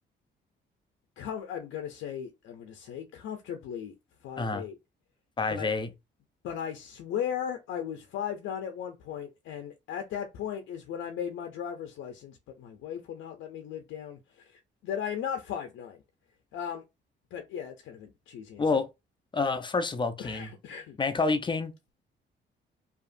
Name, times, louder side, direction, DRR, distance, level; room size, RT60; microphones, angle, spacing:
voice 1, 1.2-3.9 4.2-4.8 5.5-5.7 6.4-16.0 16.5-16.8 17.3-18.6 20.2-21.0, left 9 dB, 80° left, 0.5 m, -37 dB
voice 2, 4.4-4.7 5.4-5.9 18.6-18.9 19.3-20.5 21.0-21.7, left 4 dB, 25° left, 0.5 m, -28 dB
2.8 x 2.5 x 2.5 m
cardioid pair, 90°, 20 cm